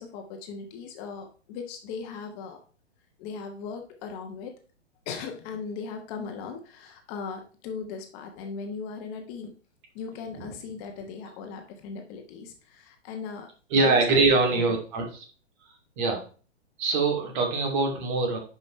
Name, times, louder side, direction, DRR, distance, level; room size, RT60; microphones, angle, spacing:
voice 1, 0.0-2.6 3.2-4.5 5.1-9.5 9.9-14.2, left 5 dB, 35° left, 4 dB, 1.2 m, -38 dB
voice 2, 13.7-15.2 16.0-16.2 16.8-18.4, right 3 dB, 40° right, 1 dB, 2.8 m, -23 dB
10.5 x 5.3 x 3.2 m, 0.39 s
figure-of-eight pair, 120°, 35 cm